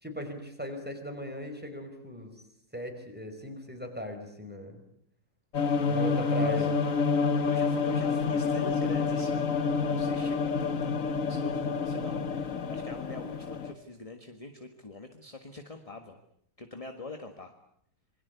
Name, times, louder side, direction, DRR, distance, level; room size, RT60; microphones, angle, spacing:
voice 1, 0.0-2.3 2.7-4.8 5.9-6.7, equal, 5° right, 5 dB, 5.1 m, -38 dB
sound 1, 5.5-13.7, left 5 dB, 50° left, 1.7 m, -28 dB
voice 2, 6.2-6.7 7.4-9.5 9.8-16.2 16.6-17.5, left 2 dB, 20° left, 6 dB, 1.7 m, -44 dB
27.5 x 22.5 x 8.3 m, 0.69 s
omnidirectional pair, 1.8 m